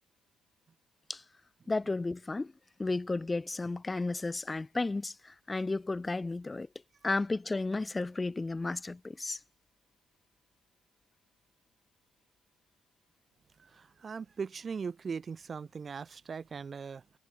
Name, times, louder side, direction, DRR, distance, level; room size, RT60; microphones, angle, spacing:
voice 1, 1.7-2.5 2.8-6.7 7.0-9.4, left 3 dB, 20° left, 2.1 m, -33 dB
voice 2, 13.6-17.2, right 5 dB, 40° right, 2.4 m, -40 dB
hypercardioid pair, 60°, 0 cm